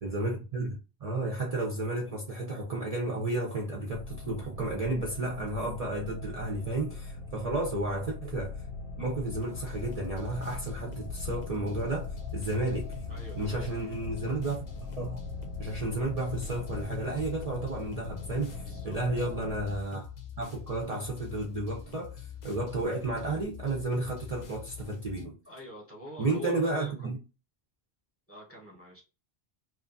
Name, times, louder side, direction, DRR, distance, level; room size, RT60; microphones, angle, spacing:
voice 1, 0.0-8.7 9.0-13.0 13.4-14.7 14.9-15.2 15.6-20.1 20.4-25.4 26.2-27.2, right 2 dB, 45° right, 0.6 m, -32 dB
sound 1, 3.9-19.8, left 3 dB, 80° left, 0.9 m, -40 dB
sound 2, 9.3-25.3, left 7 dB, 50° left, 0.7 m, -44 dB
voice 2, 13.1-13.7 18.6-19.3 25.4-27.2 28.3-29.0, equal, 15° left, 1.0 m, -46 dB
2.8 x 2.5 x 2.5 m
omnidirectional pair, 1.1 m